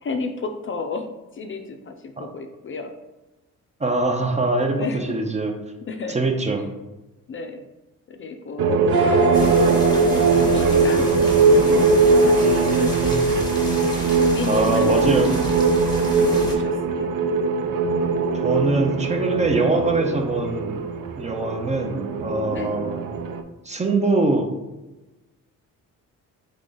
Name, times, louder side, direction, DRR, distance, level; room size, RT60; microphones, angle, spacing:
voice 1, 0.0-2.9 4.7-5.2 5.9-6.2 7.3-7.7 8.1-8.8 9.6-11.2 11.6-13.0 14.1-15.4 16.2-17.1 22.5-22.8, left 3 dB, 40° left, 5 dB, 0.4 m, -32 dB
voice 2, 3.8-5.5 6.1-6.6 12.3-13.4 14.5-15.3 18.3-20.8 21.1-23.0 23.6-24.5, right 2 dB, 20° right, 4 dB, 0.6 m, -23 dB
sound 1, 8.6-23.4, right 4 dB, 80° right, 0.5 m, -20 dB
sound 2, 8.9-13.7, right 2 dB, 45° right, 1.2 m, -26 dB
sound 3, 9.3-16.6, left 1 dB, 10° left, 1.1 m, -32 dB
3.8 x 3.3 x 3.7 m, 1.0 s
cardioid pair, 100°, 33 cm